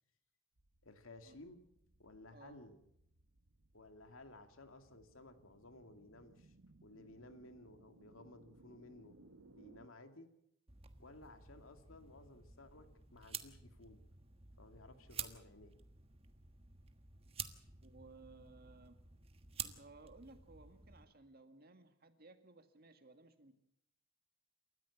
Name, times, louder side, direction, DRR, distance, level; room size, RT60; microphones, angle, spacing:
sound 1, 0.6-9.9, right 2 dB, 85° right, 1.4 m, -65 dB
voice 1, 0.8-1.6 2.0-2.8 3.7-6.5 6.8-9.2 9.5-10.3 11.0-14.0 14.6-15.8, left 2 dB, 85° left, 7 dB, 2.3 m, -57 dB
voice 2, 2.3-2.6 17.8-19.0 19.6-23.5, right 3 dB, 50° right, 8 dB, 2.1 m, -59 dB
sound 2, 10.7-21.0, right 7 dB, 30° right, 1.4 m, -51 dB
28.5 x 14.0 x 7.2 m, 0.77 s
head